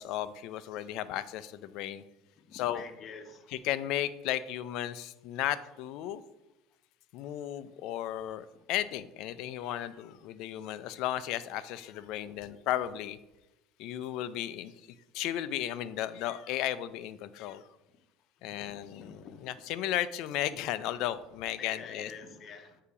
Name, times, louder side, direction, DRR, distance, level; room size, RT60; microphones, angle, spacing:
voice 1, 0.0-2.0 2.5-2.8 3.5-6.2 7.1-13.2 13.8-14.7 15.1-17.6 18.4-22.1, left 12 dB, 65° left, 15 dB, 0.4 m, -34 dB
voice 2, 2.5-3.5 18.5-19.5 21.6-22.8, left 5 dB, 40° left, 6 dB, 0.9 m, -47 dB
8.3 x 2.8 x 4.8 m, 0.97 s
supercardioid pair, 100°, 0 cm